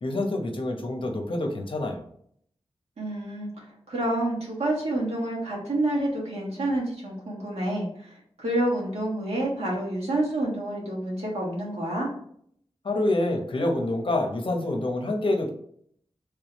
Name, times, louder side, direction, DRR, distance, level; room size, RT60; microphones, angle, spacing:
voice 1, 0.0-2.0 12.8-15.5, left 2 dB, 55° left, 3 dB, 0.8 m, -27 dB
voice 2, 3.0-3.5 3.9-8.1 8.4-12.1, right 1 dB, 85° right, -4 dB, 1.5 m, -28 dB
3.4 x 3.4 x 3.0 m, 0.65 s
wide cardioid pair, 90°, 10 cm